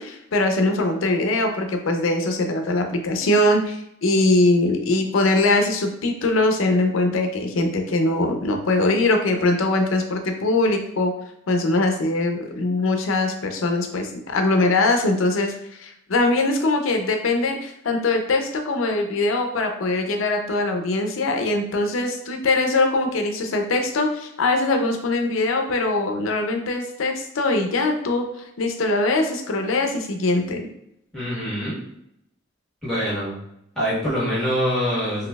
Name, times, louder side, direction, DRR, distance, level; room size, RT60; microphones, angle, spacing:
voice 1, 0.0-11.1 11.5-15.5 15.8-28.2 28.6-30.6, left 2 dB, 75° left, 4 dB, 0.5 m, -22 dB
voice 2, 31.1-31.8 32.8-33.3 33.7-35.3, equal, 5° left, -11 dB, 1.2 m, -24 dB
3.9 x 2.7 x 2.3 m, 0.78 s
head